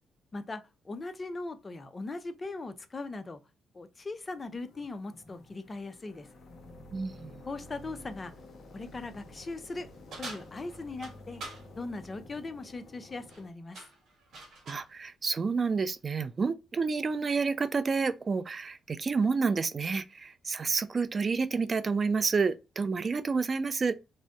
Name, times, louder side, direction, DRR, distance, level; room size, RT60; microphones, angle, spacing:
voice 1, 0.3-3.4 3.7-6.3 7.4-8.3 8.7-9.9 10.2-11.4 11.7-13.8, left 3 dB, 30° left, 0.4 m, -39 dB
sound 1, 4.3-13.5, left 2 dB, 50° left, 0.9 m, -51 dB
voice 2, 6.9-7.3 14.7-24.0, right 4 dB, 35° right, 0.3 m, -29 dB
sound 2, 10.1-11.7 13.1-13.4 13.7-14.9, right 2 dB, 70° right, 1.1 m, -45 dB
2.6 x 2.1 x 3.4 m
cardioid pair, 90°, 0 cm